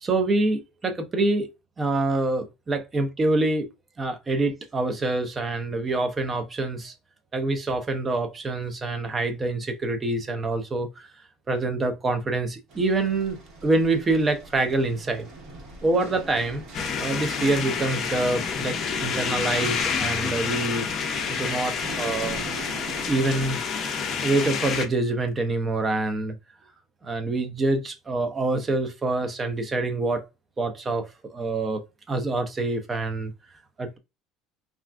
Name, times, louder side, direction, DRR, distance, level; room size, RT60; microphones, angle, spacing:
voice 1, 0.0-1.5 1.8-3.7 4.0-6.9 7.3-11.1 11.5-15.3 15.8-16.6 17.0-20.9 21.3-22.4 23.1-23.6 24.2-26.4 27.0-30.2 30.6-31.8 32.1-33.3 33.8-34.0, right 2 dB, 20° right, 0.5 m, -26 dB
sound 1, 12.7-23.5, right 2 dB, 50° right, 1.2 m, -43 dB
sound 2, 16.7-24.9, left 6 dB, 35° left, 0.5 m, -28 dB
3.3 x 2.4 x 2.3 m
cardioid pair, 150°, 0 cm